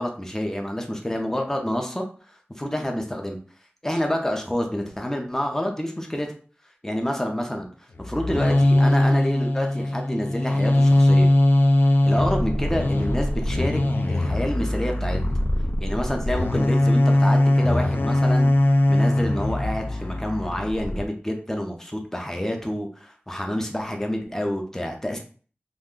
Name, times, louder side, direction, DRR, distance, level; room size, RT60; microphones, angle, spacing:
voice 1, 0.0-2.0 2.6-3.4 3.8-6.3 6.8-7.7 8.0-11.3 12.0-13.8 14.1-15.2 15.8-18.5 18.9-25.2, equal, 10° left, 3 dB, 0.5 m, -28 dB
sound 1, 8.0-21.1, left 1 dB, 60° left, 0.4 m, -21 dB
2.4 x 2.1 x 3.6 m, 0.41 s
wide cardioid pair, 55°, 4 cm